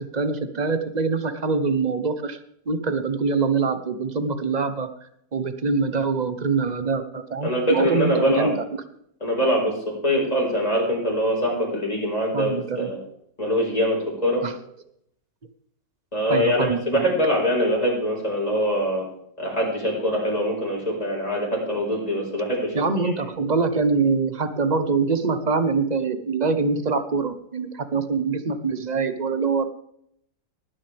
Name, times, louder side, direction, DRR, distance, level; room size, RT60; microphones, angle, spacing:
voice 1, 0.0-2.4 2.7-4.9 5.3-8.5 12.3-12.9 14.4-14.5 16.3-17.1 22.7-29.7, right 4 dB, 35° right, 10 dB, 0.7 m, -24 dB
voice 2, 7.4-8.5 9.2-13.0 13.4-14.4 16.1-19.1 19.4-22.8, equal, 20° left, -2 dB, 4.9 m, -23 dB
19.0 x 10.0 x 3.4 m, 0.71 s
omnidirectional pair, 1.9 m